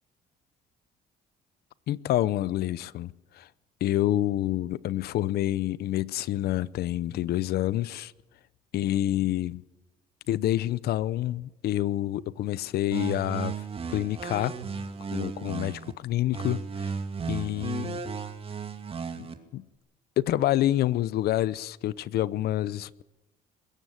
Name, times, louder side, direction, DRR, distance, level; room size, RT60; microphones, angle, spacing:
voice 1, 1.9-3.5 3.8-8.1 8.7-9.6 10.3-13.6 13.9-14.6 15.1-16.9 17.3-18.0 19.2-19.6 20.2-23.0, left 13 dB, 70° left, 0.8 m, -28 dB
sound 1, 12.9-15.9 16.3-19.3, right 5 dB, 35° right, 2.5 m, -34 dB
21.5 x 17.0 x 8.0 m
cardioid pair, 110°, 17 cm